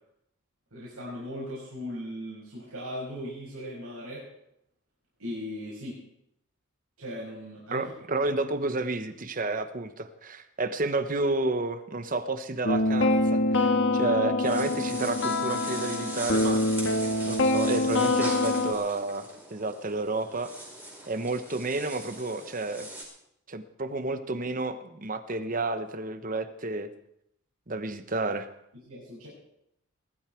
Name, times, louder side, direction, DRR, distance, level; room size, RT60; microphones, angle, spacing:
voice 1, 0.7-4.3 5.2-6.0 7.0-7.8 28.9-29.3, equal, 85° right, -6 dB, 5.9 m, -38 dB
voice 2, 7.7-16.6 17.2-20.5 21.1-22.9 23.5-26.9 27.7-28.5, right 2 dB, 35° right, 10 dB, 1.0 m, -31 dB
sound 1, 12.6-18.7, left 2 dB, 55° left, 1.5 m, -25 dB
sound 2, 14.4-23.0, right 1 dB, 10° right, 4.5 m, -41 dB
20.0 x 13.0 x 4.6 m, 0.78 s
head